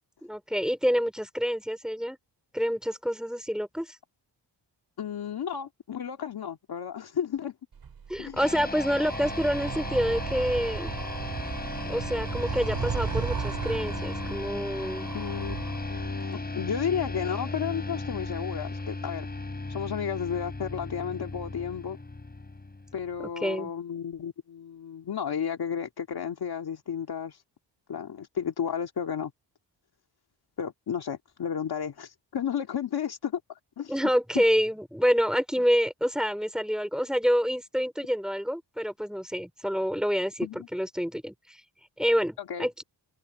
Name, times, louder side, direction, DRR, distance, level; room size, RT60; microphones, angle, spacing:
voice 1, 0.2-2.2 2.5-4.0 8.1-10.9 11.9-15.1 23.2-23.7 33.9-41.6 42.0-42.8, equal, ahead, 3.7 m, -27 dB
voice 2, 5.0-7.5 8.2-8.4 15.1-15.6 15.9-19.3 19.7-22.0 22.9-27.4 27.9-29.3 30.6-33.4 33.8-33.9 34.4-34.5 40.4-40.7 42.4-42.7, left 8 dB, 60° left, 2.0 m, -32 dB
Animal, 7.7-16.3, right 6 dB, 55° right, 3.9 m, -35 dB
sound 1, 8.4-23.2, left 3 dB, 20° left, 5.5 m, -36 dB
open air
wide cardioid pair, 120°, 42 cm